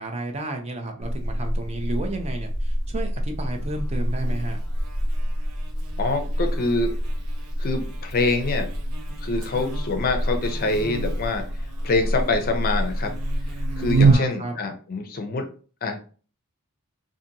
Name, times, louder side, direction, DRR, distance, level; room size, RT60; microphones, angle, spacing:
voice 1, 0.0-4.6 14.0-14.6, right 2 dB, 30° right, 4 dB, 0.4 m, -32 dB
Buzz, 1.0-14.2, right 1 dB, 75° right, 0.7 m, -26 dB
voice 2, 6.0-6.9 7.6-8.7 9.2-11.4 11.8-13.1 13.8-15.5 15.8-16.0, left 3 dB, 40° left, 5 dB, 0.4 m, -25 dB
2.7 x 2.5 x 2.6 m, 0.39 s
head